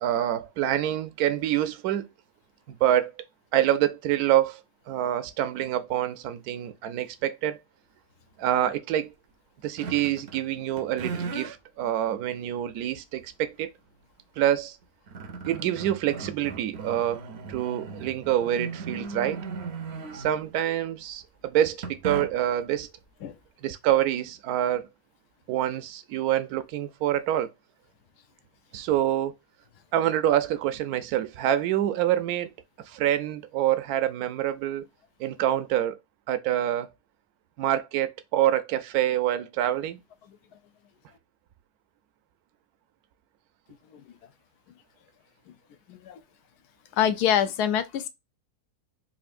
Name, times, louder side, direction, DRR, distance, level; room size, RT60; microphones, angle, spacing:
voice 1, 0.0-2.1 2.7-3.1 3.5-4.6 4.9-7.6 8.4-9.1 9.6-13.7 14.4-14.8 15.4-17.2 17.5-19.4 20.1-22.9 23.6-24.9 25.5-27.5 28.7-29.3 29.9-32.5 32.9-34.9 35.2-36.0 36.3-36.9 37.6-40.0, right 12 dB, 75° right, 1.0 m, -26 dB
sound 1, 9.8-10.5 10.8-11.6 12.3-12.4 14.4-14.5 14.8-20.6 21.8-22.6, right 4 dB, 60° right, 0.7 m, -37 dB
voice 2, 45.9-46.2 46.9-48.1, left 9 dB, 80° left, 1.1 m, -25 dB
4.2 x 2.6 x 2.5 m
omnidirectional pair, 1.7 m